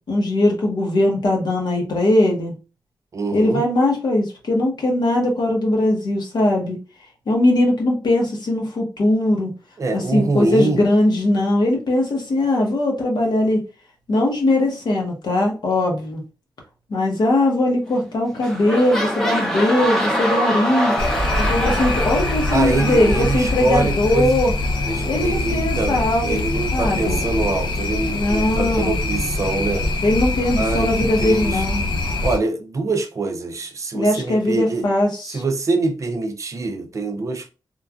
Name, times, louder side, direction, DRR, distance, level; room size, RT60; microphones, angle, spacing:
voice 1, 0.1-2.5 3.3-6.8 7.3-9.5 9.9-13.6 14.1-16.2 16.9-20.9 21.4-24.5 25.1-26.4 26.7-27.2 28.1-29.0 30.0-32.0 33.9-35.4, left 1 dB, 70° left, 0.9 m, -20 dB
voice 2, 3.1-3.6 9.8-10.8 22.5-24.4 24.9-29.9 30.6-31.6 32.2-34.9 35.3-37.5, right 3 dB, 45° right, 0.4 m, -24 dB
sound 1, 17.8-18.1 18.4-24.2 24.9-25.0, equal, 5° left, 0.6 m, -24 dB
sound 2, 21.0-32.4, left 2 dB, 85° left, 0.5 m, -24 dB
3.0 x 2.4 x 2.3 m
wide cardioid pair, 145°, 8 cm